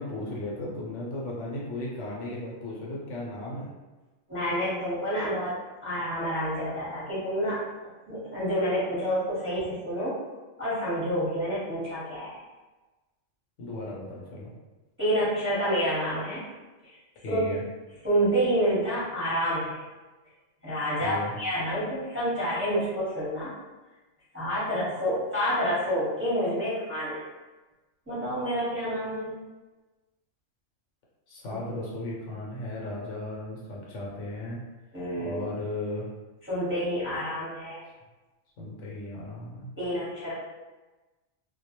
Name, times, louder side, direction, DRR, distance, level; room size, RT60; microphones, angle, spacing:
voice 1, 0.0-3.7 13.6-14.5 17.2-17.7 21.0-21.3 31.3-34.7 35.2-36.1 38.6-39.7, left 1 dB, 70° left, -4 dB, 0.9 m, -36 dB
voice 2, 4.3-7.6 8.1-10.2 10.6-12.4 15.0-16.4 16.8-16.9 17.3-17.4 18.0-19.8 20.6-23.5 24.3-27.2 28.1-29.4 31.5-31.6 34.9-35.5 36.5-37.8 39.8-40.3, equal, 10° right, -11 dB, 0.8 m, -28 dB
2.2 x 2.1 x 2.8 m, 1.2 s
omnidirectional pair, 1.3 m